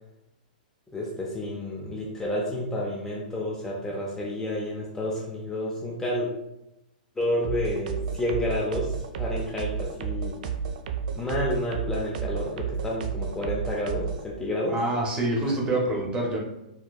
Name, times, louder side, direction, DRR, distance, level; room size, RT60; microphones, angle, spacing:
voice 1, 0.9-6.3 7.2-10.3 11.1-14.7 15.5-15.6, left 1 dB, 10° left, -4 dB, 0.4 m, -30 dB
sound 1, 7.4-14.2, right 7 dB, 60° right, 0.4 m, -31 dB
voice 2, 14.7-16.4, right 1 dB, 20° right, -1 dB, 0.7 m, -26 dB
4.3 x 2.2 x 2.3 m, 0.89 s
hypercardioid pair, 140°, 5 cm